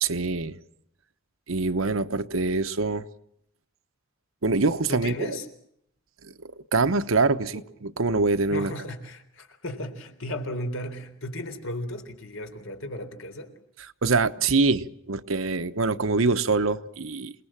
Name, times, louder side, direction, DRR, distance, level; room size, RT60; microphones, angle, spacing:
voice 1, 0.0-0.6 1.5-3.1 4.4-5.4 6.2-8.7 14.0-17.3, right 3 dB, 80° right, 1.0 m, -24 dB
voice 2, 4.9-5.5 7.5-7.6 8.5-13.5, left 1 dB, 85° left, 3.7 m, -35 dB
28.0 x 19.0 x 7.4 m
head